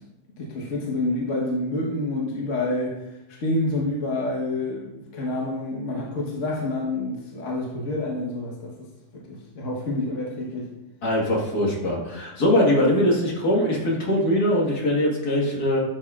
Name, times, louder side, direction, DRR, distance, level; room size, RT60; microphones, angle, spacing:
voice 1, 0.4-3.0 3.3-8.7 9.1-10.7, left 2 dB, 50° left, -3 dB, 1.5 m, -28 dB
voice 2, 11.0-15.8, left 1 dB, 70° left, -3 dB, 2.2 m, -22 dB
11.5 x 6.0 x 2.4 m, 0.96 s
omnidirectional pair, 1.7 m